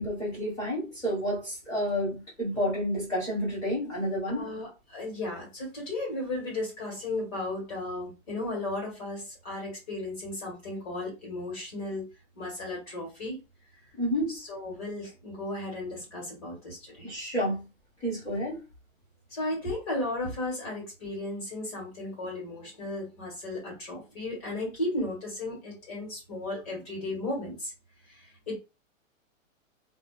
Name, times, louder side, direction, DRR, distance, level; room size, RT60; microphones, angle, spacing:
voice 1, 0.0-4.5 14.0-14.3 17.0-17.7 18.0-18.6, equal, 10° left, 0.7 m, -30 dB
voice 2, 4.3-12.1 12.3-13.4 14.3-17.1 19.3-27.7 28.1-28.5, left 2 dB, 30° left, 1.5 m, -35 dB
2.6 x 2.3 x 2.4 m
hypercardioid pair, 165°, 40 cm